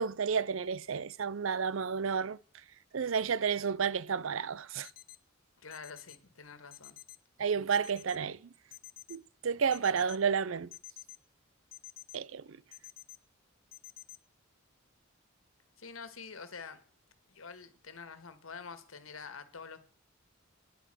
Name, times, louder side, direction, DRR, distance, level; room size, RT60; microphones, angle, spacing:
voice 1, 0.0-2.4 2.9-4.9 7.4-8.5 9.1-10.7 12.1-12.6, right 6 dB, 70° right, 0.5 m, -31 dB
sound 1, 4.8-5.2 5.7-6.2 6.7-7.2 7.7-8.2 8.7-9.2 9.7-10.2 10.7-11.2 11.7-12.2 12.7-13.2 13.7-14.2, left 16 dB, 45° left, 0.6 m, -49 dB
voice 2, 5.6-7.0 15.8-16.8 17.3-19.8, left 5 dB, 85° left, 1.7 m, -47 dB
10.5 x 8.8 x 7.6 m
head